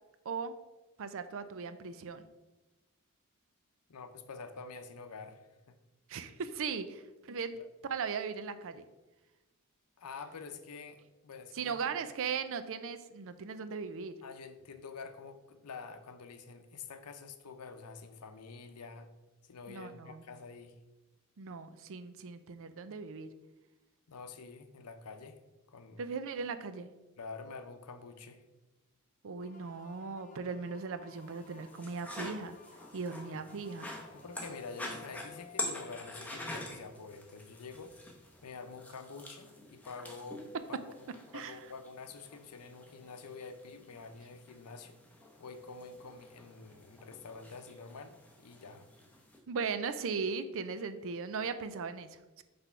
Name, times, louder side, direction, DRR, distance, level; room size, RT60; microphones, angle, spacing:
voice 1, 0.3-0.6 1.0-2.3 6.1-7.6 7.8-8.8 11.5-14.1 19.7-20.2 21.4-23.3 26.0-26.9 29.2-32.6 32.9-33.9 41.3-41.6 49.5-52.4, right 5 dB, 65° right, 11 dB, 0.5 m, -38 dB
voice 2, 3.9-5.5 7.6-7.7 10.0-12.0 14.2-19.1 19.5-20.8 24.1-25.4 25.7-26.0 27.2-28.4 34.1-38.0 38.4-40.5 41.0-41.1 41.3-45.0 45.4-48.9, left 4 dB, 85° left, 9 dB, 0.6 m, -47 dB
sound 1, 29.4-37.0, left 7 dB, 35° left, 0.6 m, -57 dB
sound 2, 31.1-49.4, left 2 dB, 5° left, 0.9 m, -46 dB
6.0 x 3.4 x 5.5 m, 1.1 s
head